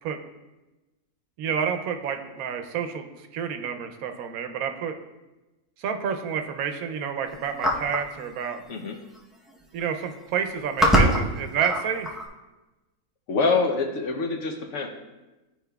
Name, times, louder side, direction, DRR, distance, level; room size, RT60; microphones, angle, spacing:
voice 1, 1.4-3.1 3.3-4.9 5.8-8.6 9.7-12.2, right 7 dB, 75° right, 7 dB, 1.0 m, -29 dB
sound 1, 7.6-8.1 9.1-9.2 9.5-9.8 10.4-12.3, equal, ahead, 0.3 m, -23 dB
voice 2, 13.3-14.9, left 4 dB, 65° left, 3 dB, 0.8 m, -25 dB
11.0 x 4.6 x 2.3 m, 1.1 s
omnidirectional pair, 1.5 m